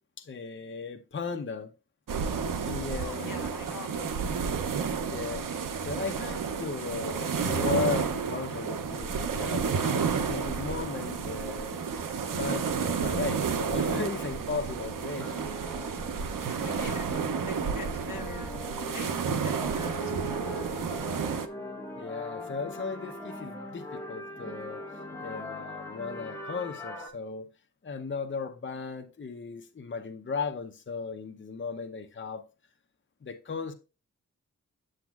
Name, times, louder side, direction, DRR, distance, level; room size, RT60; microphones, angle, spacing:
voice 1, 0.2-1.7 2.4-3.5 5.1-5.5 5.8-12.0 12.3-15.4 22.0-24.8 25.1-27.5 27.8-32.4 33.2-33.7, left 4 dB, 35° left, 0.6 m, -36 dB
sound 1, 2.1-21.5, right 6 dB, 80° right, 0.6 m, -31 dB
voice 2, 3.0-4.2 4.7-4.9 16.5-20.5, left 4 dB, 85° left, 1.3 m, -45 dB
sound 2, 15.2-27.1, left 1 dB, 10° left, 1.4 m, -41 dB
7.8 x 7.0 x 2.3 m
wide cardioid pair, 100°, 32 cm